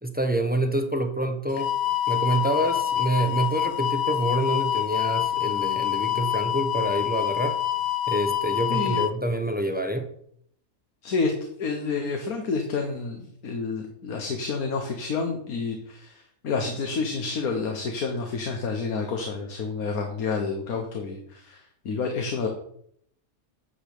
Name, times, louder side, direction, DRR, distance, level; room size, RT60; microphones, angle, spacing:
voice 1, 0.0-1.7 2.1-7.6 8.1-10.1, right 1 dB, 10° right, 5 dB, 0.7 m, -27 dB
sound 1, 1.5-9.1, left 13 dB, 60° left, 0.8 m, -26 dB
voice 2, 8.7-9.0 11.0-11.3 11.6-22.5, left 4 dB, 90° left, 3 dB, 1.7 m, -29 dB
9.6 x 5.1 x 6.8 m, 0.67 s
omnidirectional pair, 1.5 m